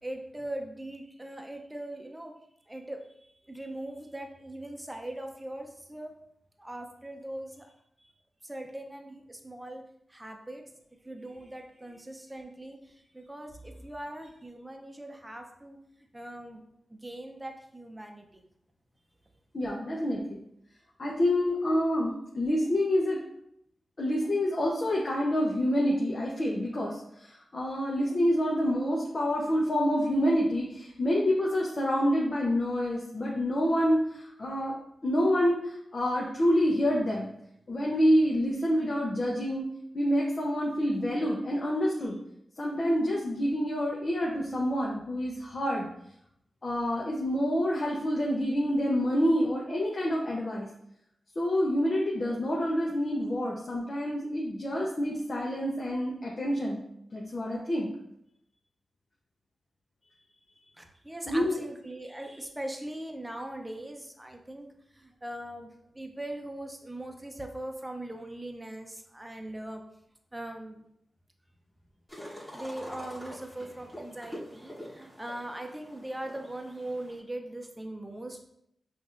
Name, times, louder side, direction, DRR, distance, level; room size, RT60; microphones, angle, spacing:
voice 1, 0.0-2.3 2.7-6.1 6.6-8.1 8.4-9.8 10.1-10.6 11.0-15.8 16.1-16.6 16.9-18.5 60.8-69.8 70.3-70.8 72.5-78.4, right 1 dB, 15° right, 3 dB, 0.7 m, -40 dB
voice 2, 19.5-20.4 21.0-23.2 24.0-34.7 35.0-37.3 37.7-39.6 39.9-42.2 42.6-45.9 46.6-50.7 51.4-56.8 57.1-57.9 61.3-61.6, equal, 50° left, -4 dB, 0.8 m, -27 dB
sound 1, 72.1-77.2, equal, 5° left, 1.2 m, -45 dB
5.3 x 2.5 x 2.6 m, 0.76 s
cardioid pair, 50°, 0 cm